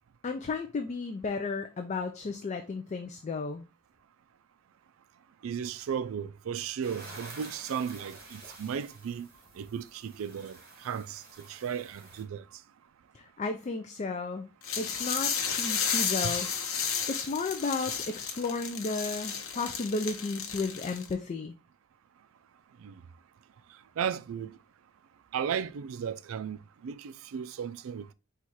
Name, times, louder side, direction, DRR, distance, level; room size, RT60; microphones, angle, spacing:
voice 1, 0.2-3.6 13.1-14.5 14.8-16.5 17.1-21.5, left 3 dB, 35° left, 0.3 m, -33 dB
voice 2, 5.4-9.3 9.6-10.6 10.8-12.4 16.2-16.4 22.8-22.9 24.0-24.6 25.3-26.6 26.8-28.1, right 7 dB, 70° right, 0.3 m, -35 dB
sound 1, 6.8-12.2, right 3 dB, 45° right, 1.5 m, -49 dB
sound 2, 14.6-21.1, left 7 dB, 70° left, 0.8 m, -32 dB
4.6 x 2.4 x 4.1 m
head